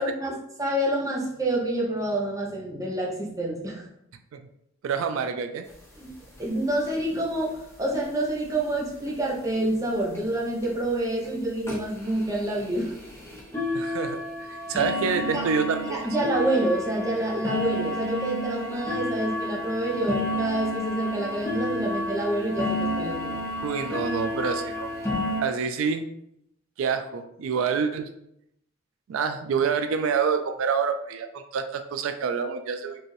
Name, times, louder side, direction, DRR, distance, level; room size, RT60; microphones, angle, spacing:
voice 1, 0.0-3.9 6.0-6.1 6.4-12.9 15.2-15.5 15.9-23.4, right 1 dB, 15° right, -2 dB, 0.7 m, -28 dB
voice 2, 4.8-5.6 13.7-16.0 23.6-24.9 25.4-26.1 26.8-28.1 29.1-33.0, right 6 dB, 80° right, 8 dB, 0.3 m, -27 dB
sound 1, 5.7-5.8 6.1-6.2 6.3-6.5 6.9-7.2 8.0-8.1 8.6-8.7 9.1-9.2 9.5-9.6 10.2-10.3 10.6-10.8 11.2-11.3 11.6-25.4, left 1 dB, 15° left, 0.9 m, -31 dB
4.4 x 2.6 x 3.1 m, 0.79 s
head